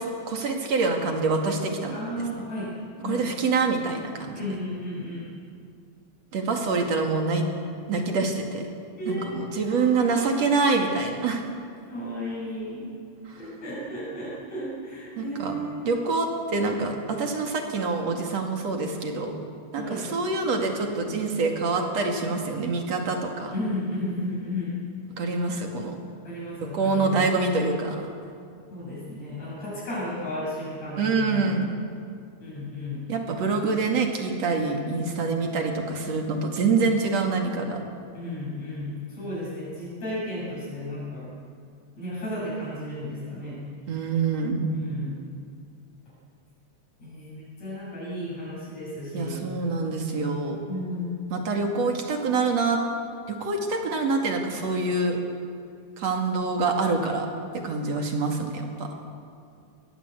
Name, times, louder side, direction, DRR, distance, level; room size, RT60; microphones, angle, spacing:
voice 1, 0.0-2.0 3.0-4.4 6.3-7.5 7.9-8.6 9.1-11.4 13.3-13.4 15.2-15.5 15.9-19.4 19.7-23.5 25.2-26.0 26.6-28.1 31.0-31.7 33.1-37.8 43.9-44.7 49.1-50.6 51.3-52.8 53.3-55.2 56.0-57.3 57.6-58.9, right 4 dB, 60° right, 3 dB, 3.4 m, -26 dB
voice 2, 1.9-2.8 3.0-3.3 4.3-5.3 9.0-9.3 9.6-10.2 11.9-12.9 13.4-15.9 19.8-20.1 23.5-24.8 26.2-27.2 28.7-31.6 32.4-33.7 38.1-41.3 42.0-43.6 44.7-45.2 47.0-49.4 50.7-51.1, left 1 dB, 65° left, -7 dB, 8.7 m, -34 dB
23.0 x 18.5 x 8.3 m, 2.3 s
omnidirectional pair, 3.3 m